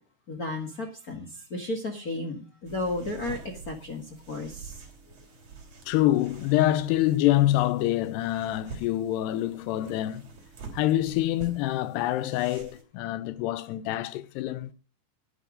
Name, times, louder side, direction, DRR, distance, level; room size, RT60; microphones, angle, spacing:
voice 1, 0.3-4.7, left 2 dB, 65° left, 0.8 m, -34 dB
sound 1, 2.7-12.8, right 4 dB, 40° right, 3.7 m, -47 dB
voice 2, 5.9-10.3 10.7-14.7, left 14 dB, 90° left, 2.9 m, -26 dB
11.0 x 10.0 x 5.1 m
omnidirectional pair, 4.7 m